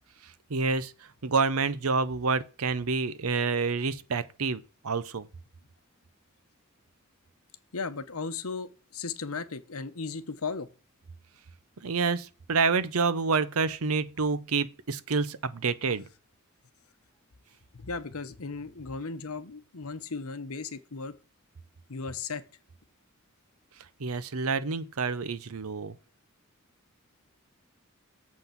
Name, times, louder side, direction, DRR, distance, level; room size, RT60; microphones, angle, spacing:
voice 1, 0.5-0.9 1.2-5.3 11.8-16.0 24.0-25.9, right 4 dB, 85° right, 0.7 m, -28 dB
voice 2, 7.7-10.7 15.9-16.0 17.7-21.1 21.9-22.4, left 4 dB, 80° left, 1.0 m, -36 dB
7.4 x 5.8 x 5.8 m
head